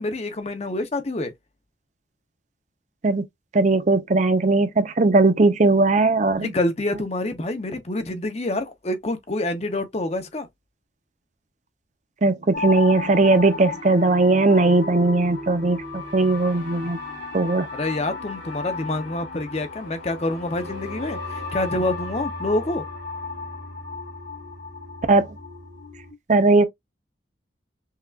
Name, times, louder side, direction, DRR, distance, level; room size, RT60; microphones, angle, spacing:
voice 1, 0.0-1.3 6.4-10.5 17.7-22.8, left 2 dB, 35° left, 0.6 m, -27 dB
voice 2, 3.5-6.5 12.2-17.0 17.3-17.7 25.1-25.3 26.3-26.7, right 3 dB, 40° right, 0.6 m, -18 dB
sound 1, 12.5-26.1, left 3 dB, 65° left, 2.3 m, -34 dB
5.6 x 2.4 x 2.3 m
head